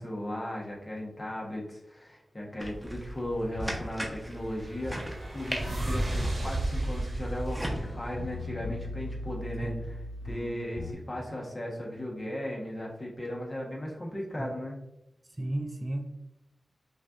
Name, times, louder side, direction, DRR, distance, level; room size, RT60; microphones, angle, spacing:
voice 1, 0.0-10.0 10.2-14.8, left 1 dB, 35° left, -2 dB, 1.2 m, -36 dB
sound 1, 2.6-7.8, equal, 15° right, 1.0 m, -38 dB
sound 2, 3.9-8.9, right 1 dB, 75° right, 1.2 m, -34 dB
sound 3, 7.7-10.9, left 2 dB, 80° left, 0.4 m, -39 dB
voice 2, 15.4-16.1, right 1 dB, 30° right, 4 dB, 0.5 m, -33 dB
5.5 x 2.6 x 2.5 m, 0.85 s
cardioid pair, 45°, 0 cm